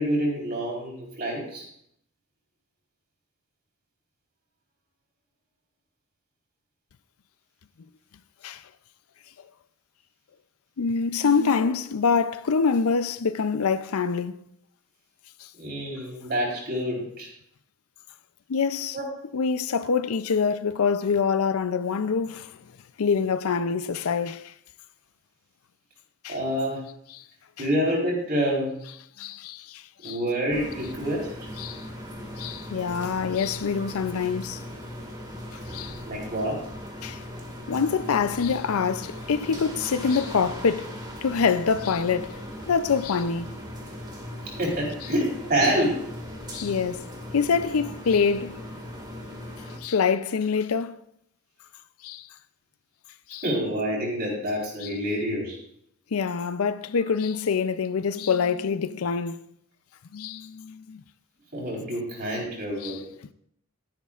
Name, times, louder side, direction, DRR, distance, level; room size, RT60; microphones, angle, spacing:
voice 1, 0.0-1.6 11.2-11.4 15.6-17.3 18.9-19.0 26.3-26.8 27.6-28.8 30.0-31.3 36.0-36.6 44.4-46.0 53.4-55.6 61.5-63.0, equal, 45° right, 4.1 m, -27 dB
voice 2, 10.8-14.4 15.4-15.5 18.5-19.0 19.3-22.7 23.0-24.5 26.2-26.4 29.2-30.2 31.6-31.9 32.4-34.6 35.7-36.0 37.0-37.2 37.7-41.0 41.2-43.6 46.5-47.1 47.3-48.6 49.8-51.0 52.0-52.3 53.3-53.4 54.8-54.9 56.1-59.5 60.1-61.0 62.8-63.0, left 5 dB, 80° left, 0.5 m, -25 dB
sound 1, 30.5-49.8, equal, 20° right, 1.9 m, -39 dB
12.5 x 11.0 x 2.5 m
head